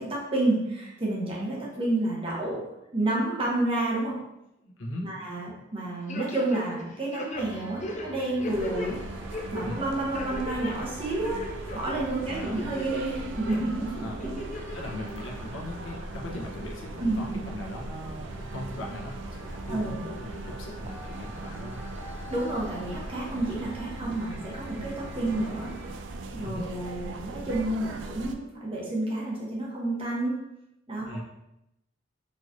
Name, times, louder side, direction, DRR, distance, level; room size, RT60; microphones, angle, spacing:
voice 1, 0.0-2.6 2.9-4.2 5.0-9.0 9.3-11.4 11.7-14.4 17.0-17.5 19.7-20.1 22.3-25.7 26.3-30.3 30.9-31.2, right 2 dB, 30° right, -4 dB, 0.9 m, -30 dB
voice 2, 4.6-5.1 9.6-9.8 12.2-12.6 13.8-21.8 26.4-26.7 31.1-31.2, left 1 dB, 85° left, -2 dB, 0.8 m, -39 dB
sound 1, 6.1-6.8 7.1-8.9 9.3-9.7 10.1-10.7 11.1-12.0 12.4-13.0 13.5-13.6 14.2-14.8 15.2-15.3, left 1 dB, 40° left, 0.5 m, -36 dB
sound 2, 7.3-26.0, right 1 dB, 10° right, 0.6 m, -46 dB
sound 3, 8.5-28.3, right 2 dB, 70° right, 0.4 m, -39 dB
4.3 x 3.1 x 2.6 m, 0.86 s
head